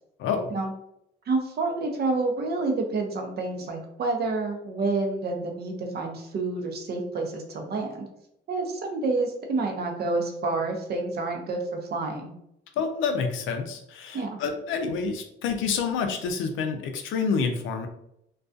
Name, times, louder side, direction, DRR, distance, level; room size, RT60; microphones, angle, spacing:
voice 1, 0.2-0.5 12.8-17.9, left 5 dB, 85° left, 5 dB, 0.4 m, -28 dB
voice 2, 1.3-8.0 8.5-12.3 14.1-14.4, right 3 dB, 55° right, 3 dB, 0.6 m, -28 dB
2.3 x 2.3 x 2.5 m, 0.76 s
cardioid pair, 90°, 20 cm